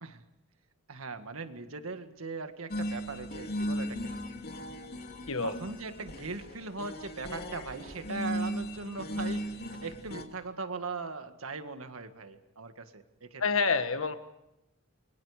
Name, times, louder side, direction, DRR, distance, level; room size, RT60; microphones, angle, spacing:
voice 1, 0.9-4.1 5.4-13.4, right 3 dB, 75° right, 8 dB, 1.8 m, -40 dB
sound 1, 2.7-10.2, equal, 45° left, 2.6 m, -37 dB
voice 2, 5.3-5.6 13.4-14.1, left 4 dB, 70° left, 9 dB, 1.6 m, -28 dB
29.0 x 23.0 x 5.0 m, 0.87 s
head